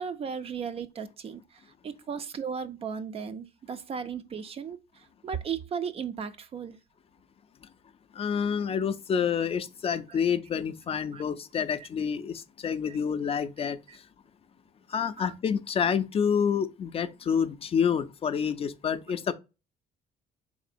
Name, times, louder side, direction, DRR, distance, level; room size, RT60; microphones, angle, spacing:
voice 1, 0.0-1.4 1.8-6.8 10.1-10.2 11.1-11.2 11.8-11.9 12.9-13.0 13.9-14.0 15.2-15.3, right 6 dB, 35° right, 0.3 m, -36 dB
voice 2, 8.2-13.8 14.9-19.3, left 7 dB, 35° left, 0.4 m, -28 dB
3.9 x 3.7 x 2.5 m
cardioid pair, 110°, 17 cm